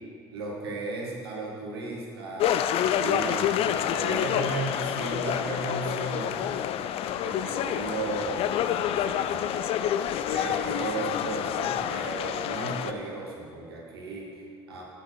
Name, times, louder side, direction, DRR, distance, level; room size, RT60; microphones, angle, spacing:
voice 1, 0.3-6.4 7.1-8.6 8.9-9.5 10.3-14.8, right 3 dB, 85° right, -3 dB, 1.6 m, -35 dB
sound 1, 2.4-12.9, left 10 dB, 50° left, 0.4 m, -28 dB
6.8 x 6.5 x 6.2 m, 2.3 s
hypercardioid pair, 65°, 13 cm